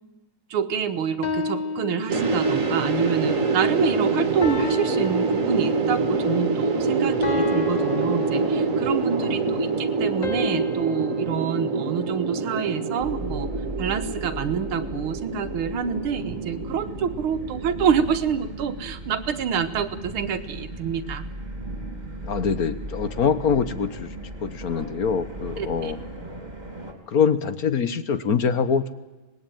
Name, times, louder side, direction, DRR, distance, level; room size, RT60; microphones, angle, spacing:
voice 1, 0.5-13.5 13.8-21.3 25.6-25.9, right 7 dB, 80° right, 11 dB, 2.0 m, -27 dB
sound 1, 1.2-2.8 4.4-6.1 7.2-9.1 10.2-12.6, left 3 dB, 30° left, 0.9 m, -33 dB
sound 2, 2.1-18.2, right 3 dB, 40° right, 2.1 m, -25 dB
sound 3, 13.0-26.9, right 1 dB, 20° right, 3.2 m, -37 dB
voice 2, 22.2-24.1 24.4-26.0 27.1-28.9, left 6 dB, 50° left, 12 dB, 1.3 m, -24 dB
25.5 x 20.0 x 9.2 m, 1.1 s
omnidirectional pair, 2.3 m